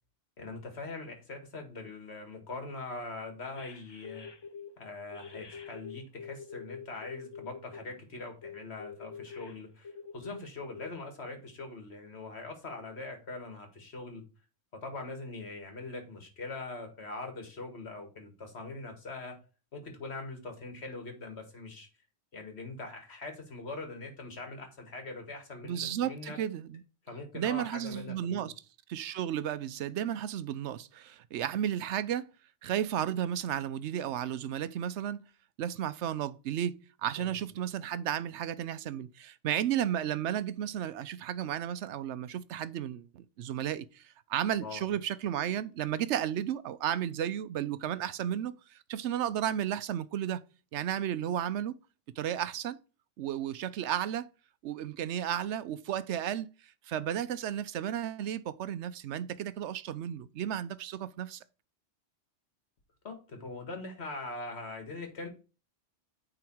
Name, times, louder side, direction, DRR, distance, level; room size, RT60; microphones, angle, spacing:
voice 1, 0.4-4.3 4.8-14.2 14.7-19.4 19.7-21.9 22.3-26.4 27.1-28.5 37.2-37.3 44.6-44.8 63.0-65.3, left 3 dB, 65° left, 2.1 m, -42 dB
sound 1, 3.6-4.7 5.1-7.8 8.4-10.4 10.7-10.9, left 6 dB, 30° left, 0.5 m, -45 dB
voice 2, 25.6-26.8 27.3-28.5 28.9-32.3 32.6-35.2 35.6-50.4 50.7-51.8 52.2-52.8 53.2-54.3 54.6-56.5 56.9-61.4, right 10 dB, 75° right, 0.9 m, -33 dB
9.2 x 3.9 x 4.6 m
omnidirectional pair, 1.2 m